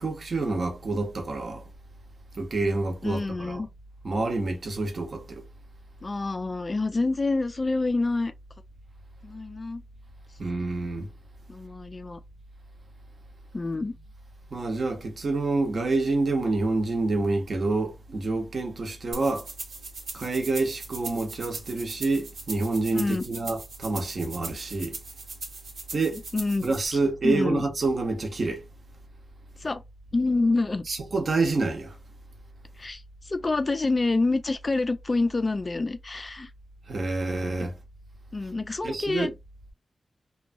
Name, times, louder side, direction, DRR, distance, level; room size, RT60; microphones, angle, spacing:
voice 1, 0.0-1.6 2.4-3.6 4.0-5.4 10.4-11.1 14.5-19.5 20.1-25.0 25.9-26.2 26.6-28.6 30.9-31.9 36.9-37.8 38.8-39.3, right 3 dB, 45° right, 0.7 m, -27 dB
voice 2, 3.0-3.7 6.0-8.3 9.2-9.8 10.4-10.7 11.5-12.2 13.5-14.0 22.9-23.2 26.1-26.7 26.9-27.6 29.6-29.8 30.1-30.9 32.8-36.5 37.6-37.7 38.3-39.3, left 3 dB, 30° left, 0.3 m, -27 dB
sound 1, 19.1-26.9, right 3 dB, 75° right, 0.9 m, -40 dB
2.9 x 2.2 x 2.6 m
wide cardioid pair, 175°, 0 cm